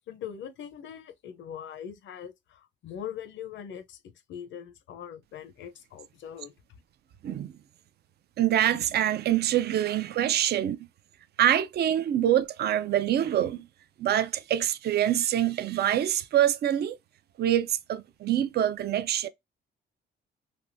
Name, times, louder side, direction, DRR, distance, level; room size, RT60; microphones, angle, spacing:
voice 1, 0.1-4.0 4.3-6.5, left 9 dB, 70° left, 0.6 m, -41 dB
voice 2, 8.4-10.8 11.4-13.7 14.0-17.0 17.4-19.3, right 11 dB, 55° right, 0.4 m, -25 dB
3.4 x 2.7 x 2.5 m
cardioid pair, 90°, 20 cm